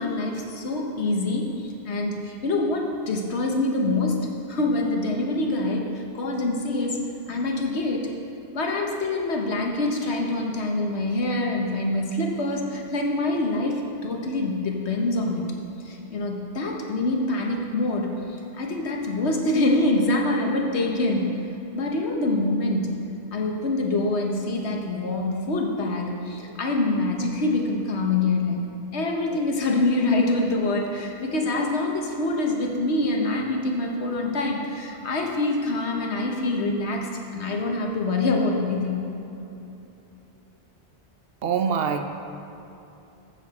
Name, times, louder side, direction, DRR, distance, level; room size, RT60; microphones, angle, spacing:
voice 1, 0.0-4.2 4.5-7.0 7.3-8.1 8.5-15.5 15.8-18.1 18.5-21.3 21.7-22.9 23.3-28.5 28.9-39.1, left 2 dB, 80° left, 1 dB, 1.4 m, -25 dB
voice 2, 41.4-42.1, right 6 dB, 65° right, 7 dB, 0.8 m, -24 dB
14.5 x 7.1 x 4.2 m, 2.9 s
omnidirectional pair, 1.1 m